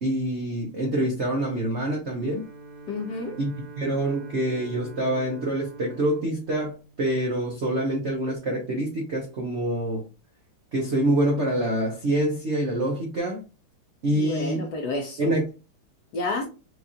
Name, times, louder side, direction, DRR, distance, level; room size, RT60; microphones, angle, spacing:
voice 1, 0.0-2.4 3.4-10.0 10.7-13.4 14.0-14.6 15.2-15.4, right 1 dB, 65° right, 0.6 m, -26 dB
Bowed string instrument, 2.0-7.7, right 3 dB, 50° right, 1.4 m, -45 dB
voice 2, 2.9-3.4 14.1-15.3 16.1-16.4, left 2 dB, 70° left, 1.0 m, -30 dB
4.5 x 2.4 x 2.7 m
omnidirectional pair, 2.3 m